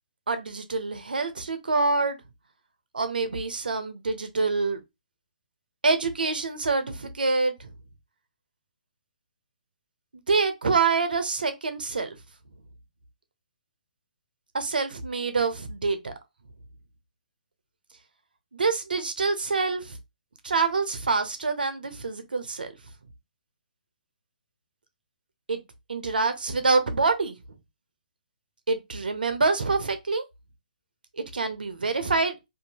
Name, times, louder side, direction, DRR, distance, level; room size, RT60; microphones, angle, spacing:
voice 1, 0.3-2.2 2.9-4.8 5.8-7.7 10.3-12.2 14.5-16.1 18.5-20.0 20.4-22.7 25.5-25.6 25.9-27.3 28.7-30.2 31.2-32.3, right 4 dB, 80° right, 0.7 m, -26 dB
2.6 x 2.6 x 2.8 m
figure-of-eight pair, 140°, 5 cm